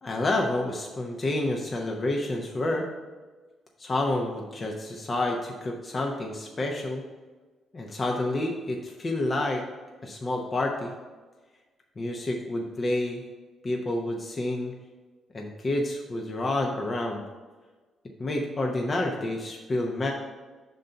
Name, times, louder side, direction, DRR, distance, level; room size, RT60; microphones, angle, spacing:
voice 1, 0.0-2.9 3.8-7.0 7.7-9.6 10.0-10.9 12.0-13.2 13.6-14.7 15.3-17.2 18.2-20.1, left 2 dB, 35° left, 0 dB, 0.7 m, -29 dB
5.3 x 3.9 x 5.6 m, 1.3 s
cardioid pair, 90°, 0 cm